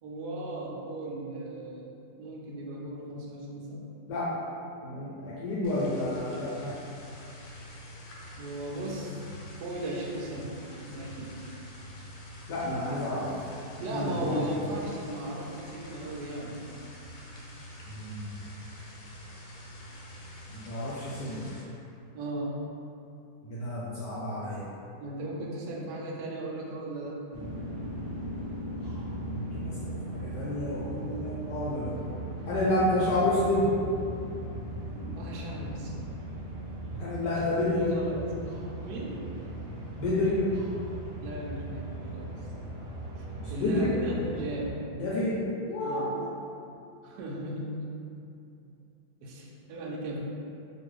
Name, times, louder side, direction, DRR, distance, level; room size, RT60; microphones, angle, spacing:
voice 1, 0.0-3.8 8.4-9.2 9.6-10.5 10.8-11.3 13.8-16.6 22.1-22.6 25.0-27.3 35.2-36.0 37.7-38.2 38.8-39.2 41.2-42.3 43.2-44.8 45.8-46.1 47.0-47.9 49.2-50.2, right 2 dB, 75° right, -3 dB, 0.9 m, -37 dB
voice 2, 4.8-6.7 12.5-13.3 13.9-14.5 17.9-18.4 20.5-21.4 23.4-24.6 29.2-31.9 32.5-33.8 37.0-37.9 40.0-40.4 43.4-44.0 44.9-45.4 45.7-46.4, left 1 dB, 75° left, -8 dB, 1.1 m, -30 dB
sound 1, 5.6-21.6, equal, 90° left, 1.4 m, -46 dB
sound 2, 27.3-44.7, right 1 dB, 60° right, 0.5 m, -38 dB
2.9 x 2.6 x 3.0 m, 2.7 s
omnidirectional pair, 2.2 m